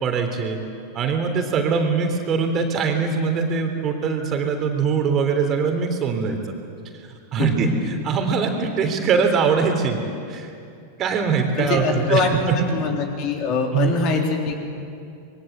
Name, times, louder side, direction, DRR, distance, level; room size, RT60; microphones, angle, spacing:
voice 1, 0.0-0.6 0.9-6.4 7.3-7.7 8.0-10.0 10.3-10.5 11.0-12.7 13.7-13.9, right 5 dB, 30° right, 4 dB, 3.4 m, -22 dB
voice 2, 11.6-12.3 12.7-14.6, left 5 dB, 40° left, 2 dB, 3.8 m, -23 dB
27.0 x 22.5 x 8.2 m, 2.5 s
figure-of-eight pair, 90°, 0 cm